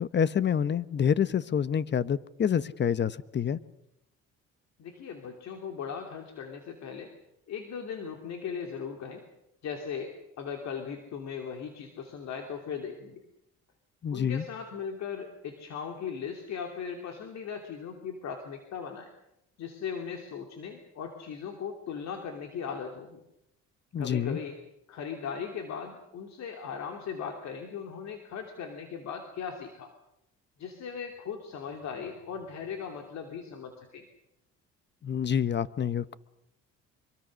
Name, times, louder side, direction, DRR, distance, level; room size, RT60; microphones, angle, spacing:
voice 1, 0.0-3.6 14.0-14.4 23.9-24.4 35.0-36.1, left 8 dB, 35° left, 16 dB, 1.0 m, -27 dB
voice 2, 4.8-7.1 7.5-9.2 9.6-13.2 14.1-19.1 19.6-23.2 24.0-24.6 24.9-29.9 30.6-34.1, left 6 dB, 65° left, 4 dB, 3.0 m, -38 dB
25.0 x 23.5 x 6.4 m, 0.83 s
cardioid pair, 105°, 30 cm